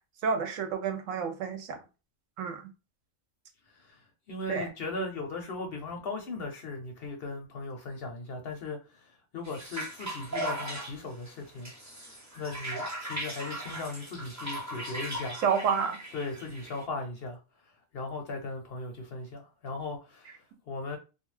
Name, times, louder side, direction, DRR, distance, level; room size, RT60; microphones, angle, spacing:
voice 1, 0.2-1.8 2.4-2.6 4.5-4.7 15.4-16.0, right 6 dB, 75° right, 0.9 m, -29 dB
voice 2, 4.3-11.7 12.4-15.4 16.1-17.4 17.9-21.0, left 3 dB, 55° left, 0.7 m, -38 dB
sound 1, 9.4-16.8, right 1 dB, 25° right, 0.3 m, -38 dB
2.3 x 2.3 x 3.1 m
omnidirectional pair, 1.4 m